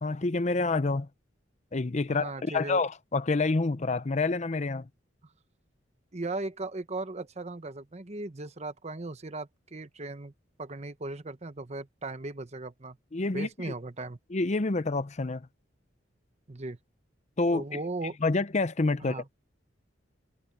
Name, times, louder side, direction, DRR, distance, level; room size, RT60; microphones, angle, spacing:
voice 1, 0.0-1.1 1.7-4.9 13.1-13.7 14.3-15.5 17.4-17.8 18.2-19.2, left 3 dB, 40° left, 0.6 m, -28 dB
voice 2, 2.1-2.8 6.1-10.3 10.6-13.0 13.3-14.2 16.5-16.8 17.5-18.2 19.0-19.2, right 2 dB, 35° right, 1.0 m, -37 dB
head